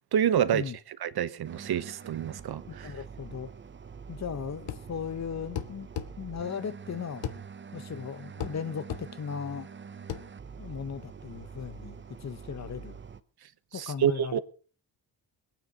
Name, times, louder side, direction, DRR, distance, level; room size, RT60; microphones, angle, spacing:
voice 1, 0.1-0.6 1.0-2.9 13.7-14.4, right 9 dB, 60° right, 1.0 m, -27 dB
sound 1, 1.4-13.2, right 6 dB, 25° right, 0.8 m, -45 dB
voice 2, 2.7-3.5 4.1-5.9 6.2-7.2 7.7-9.7 10.6-13.0 13.7-14.4, left 7 dB, 40° left, 1.0 m, -37 dB
sound 2, 4.7-4.9 5.6-6.1 7.2-7.4 8.4-8.6 8.9-9.1 10.1-10.3, left 8 dB, 80° left, 1.4 m, -34 dB
21.0 x 9.3 x 5.1 m
wide cardioid pair, 140°, 43 cm